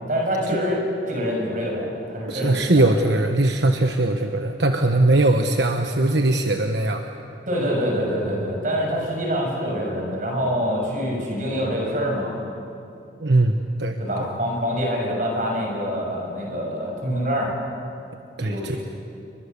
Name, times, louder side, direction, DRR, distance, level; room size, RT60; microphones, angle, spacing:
voice 1, 0.0-2.9 7.5-12.4 14.0-17.5 18.4-18.8, equal, 45° right, 0 dB, 6.8 m, -25 dB
voice 2, 2.3-7.0 13.2-13.5 13.8-14.0 18.4-18.8, right 2 dB, 80° right, 5 dB, 1.2 m, -20 dB
30.0 x 23.5 x 6.9 m, 2.7 s
head